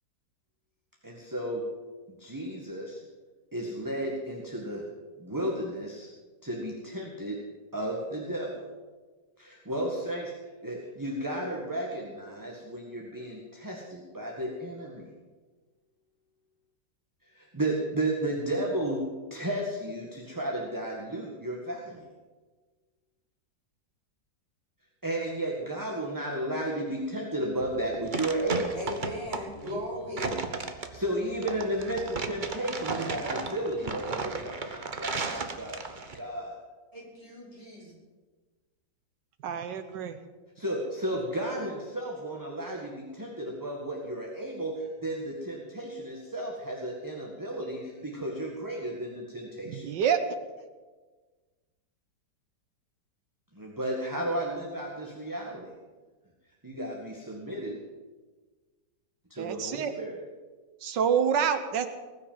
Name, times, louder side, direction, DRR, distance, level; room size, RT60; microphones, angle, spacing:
voice 1, 1.0-1.6 2.1-3.0 3.5-4.8 5.2-6.1 6.4-7.4 7.7-8.7 9.4-10.3 10.6-15.1 17.3-19.0 19.3-22.1 25.0-28.8 30.8-36.5 40.5-49.9 53.5-55.7 56.6-57.8 59.3-60.2, right 1 dB, 10° right, -2 dB, 1.8 m, -33 dB
sound 1, 27.6-36.2, right 4 dB, 35° right, 0.9 m, -35 dB
voice 2, 28.7-30.3 36.9-37.9, left 1 dB, 20° left, -5 dB, 4.8 m, -37 dB
voice 3, 39.4-40.2 49.6-50.2 59.4-59.9 60.8-61.9, right 7 dB, 80° right, 9 dB, 1.6 m, -27 dB
20.0 x 6.6 x 9.0 m, 1.3 s
omnidirectional pair, 1.9 m